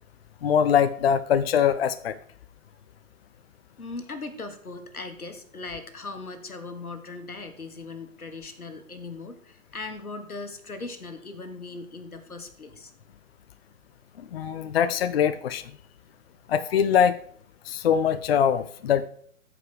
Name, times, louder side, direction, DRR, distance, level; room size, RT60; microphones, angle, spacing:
voice 1, 0.4-2.2 14.3-15.7 16.5-17.2 17.7-19.1, left 8 dB, 45° left, 15 dB, 0.5 m, -22 dB
voice 2, 3.8-12.9, left 3 dB, 90° left, 8 dB, 1.6 m, -39 dB
13.5 x 5.1 x 4.9 m, 0.63 s
figure-of-eight pair, 130°, 42 cm